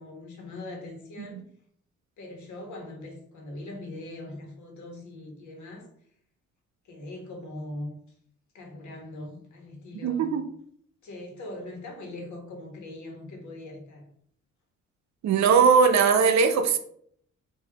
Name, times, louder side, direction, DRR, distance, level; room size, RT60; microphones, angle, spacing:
voice 1, 0.0-1.4 2.2-5.9 6.8-8.1 8.5-10.4 11.0-14.1, left 2 dB, 70° left, 1.3 m, -41 dB
voice 2, 10.0-10.4 15.2-16.8, right 6 dB, 65° right, 0.6 m, -20 dB
3.3 x 2.7 x 3.4 m
cardioid pair, 90°, 30 cm